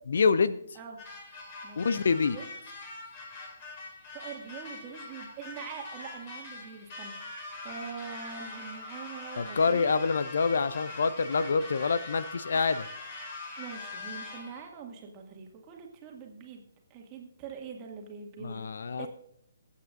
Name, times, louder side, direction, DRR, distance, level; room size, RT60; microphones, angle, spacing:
voice 1, 0.1-0.6 1.8-2.4 9.4-12.9 18.4-19.1, left 5 dB, 55° left, 14 dB, 0.5 m, -26 dB
sound 1, 1.0-14.7, left 3 dB, 35° left, 3.8 m, -43 dB
voice 2, 4.1-7.2 7.6-10.0 13.6-16.6 16.9-18.7 19.0-19.1, right 6 dB, 25° right, 1 dB, 2.0 m, -43 dB
23.0 x 8.4 x 2.6 m, 0.70 s
figure-of-eight pair, 135°, 0 cm